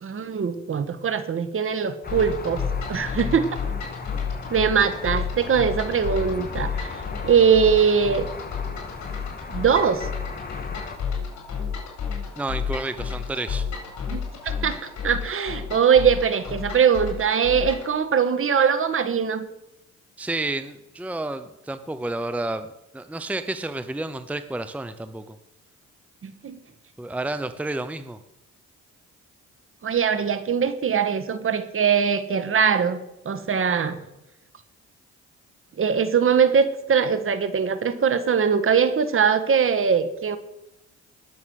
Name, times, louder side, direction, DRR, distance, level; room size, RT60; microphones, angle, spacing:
voice 1, 0.0-2.6 2.9-3.5 4.5-8.3 9.5-10.1 14.1-19.4 26.2-26.6 29.8-33.0 33.2-34.0 35.8-40.4, right 7 dB, 45° right, 11 dB, 1.5 m, -21 dB
sound 1, 2.0-11.0, left 4 dB, 30° left, 1.8 m, -37 dB
sound 2, 2.1-17.9, left 6 dB, 65° left, 5.2 m, -32 dB
voice 2, 12.4-13.7 20.2-25.4 27.0-28.2, right 2 dB, 5° right, 11 dB, 0.7 m, -30 dB
19.0 x 7.2 x 6.4 m, 0.86 s
cardioid pair, 90°, 30 cm